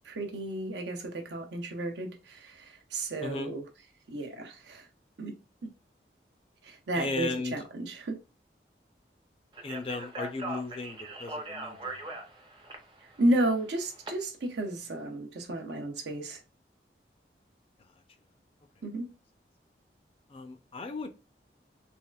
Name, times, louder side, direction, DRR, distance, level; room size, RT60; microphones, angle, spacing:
voice 1, 0.0-3.7 4.1-4.9 5.2-5.3 6.6-8.2 13.2-16.4 18.8-19.1, right 1 dB, 80° right, 0.7 m, -32 dB
voice 2, 3.2-3.5 7.0-7.6 9.6-12.0 20.3-21.1, left 3 dB, 30° left, 0.4 m, -36 dB
Speech, 9.5-14.1, right 2 dB, 25° right, 0.5 m, -40 dB
3.4 x 2.4 x 2.3 m
head